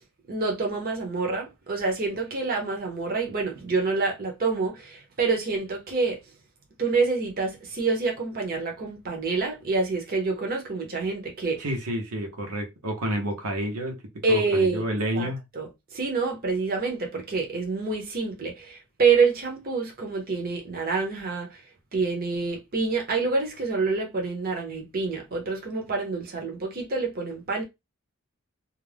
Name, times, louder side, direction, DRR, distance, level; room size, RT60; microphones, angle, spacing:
voice 1, 0.3-6.2 6.8-11.7 14.2-14.8 15.1-21.6 21.9-27.6, right 4 dB, 40° right, 0.7 m, -27 dB
voice 2, 11.6-14.0 14.3-15.4, equal, 80° right, 0.8 m, -29 dB
2.4 x 2.1 x 3.2 m
head